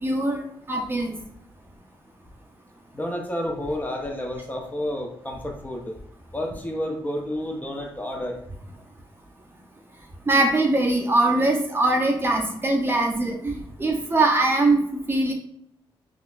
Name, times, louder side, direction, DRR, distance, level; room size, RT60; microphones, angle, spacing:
voice 1, 0.0-1.2 10.3-14.8 15.1-15.3, right 2 dB, 25° right, 0 dB, 0.5 m, -22 dB
voice 2, 2.9-6.0 6.3-8.4, left 1 dB, 15° left, 1 dB, 0.6 m, -30 dB
3.8 x 2.4 x 2.3 m, 0.71 s
cardioid pair, 95°, 9 cm